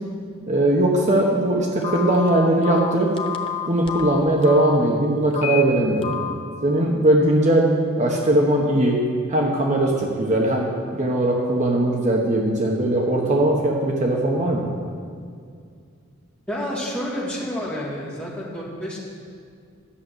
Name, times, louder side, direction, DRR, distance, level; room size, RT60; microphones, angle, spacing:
voice 1, 0.5-3.1 3.7-6.2 6.6-7.7 8.0-9.0 9.3-14.7, right 1 dB, 40° right, -1 dB, 1.1 m, -20 dB
Telephone, 1.8-4.8 5.3-5.6 6.0-6.3, left 8 dB, 30° left, 0.8 m, -29 dB
voice 2, 16.5-19.0, equal, 5° left, -6 dB, 2.4 m, -29 dB
11.5 x 6.6 x 8.0 m, 2.2 s
head